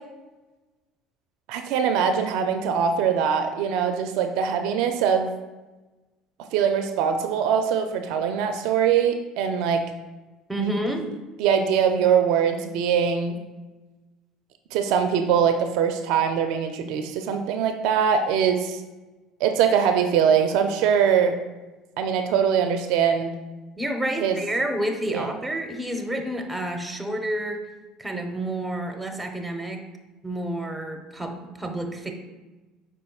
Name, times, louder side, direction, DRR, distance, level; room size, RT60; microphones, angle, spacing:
voice 1, 1.5-5.3 6.5-9.8 10.6-10.7 11.4-13.4 14.7-18.8 19.4-21.4 22.0-23.3 24.2-24.4 25.1-25.3, right 7 dB, 70° right, 6 dB, 0.4 m, -22 dB
voice 2, 10.5-11.1 23.8-27.6 28.0-29.8 30.2-32.1, right 1 dB, 10° right, 4 dB, 0.8 m, -29 dB
5.1 x 4.3 x 2.3 m, 1.2 s
hypercardioid pair, 70°, 0 cm